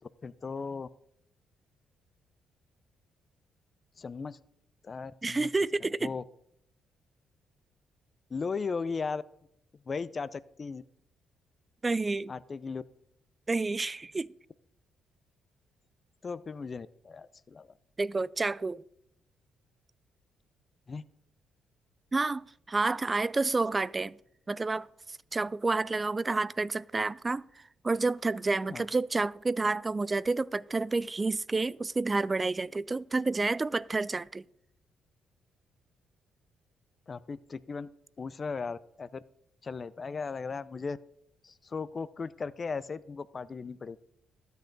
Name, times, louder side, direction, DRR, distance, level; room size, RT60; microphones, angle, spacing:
voice 1, 0.0-0.9 4.0-4.4 4.8-5.5 6.0-6.2 8.3-9.2 9.9-10.8 12.3-12.8 16.2-17.7 20.9-21.0 28.7-28.9 37.1-37.9 38.2-39.2 39.6-41.0 41.4-44.0, left 5 dB, 35° left, 0.5 m, -37 dB
voice 2, 5.2-6.1 11.8-12.3 13.5-14.3 18.0-18.8 22.1-24.2 24.5-34.4, right 3 dB, 25° right, 0.3 m, -29 dB
13.0 x 9.1 x 3.9 m
cardioid pair, 90°, 0 cm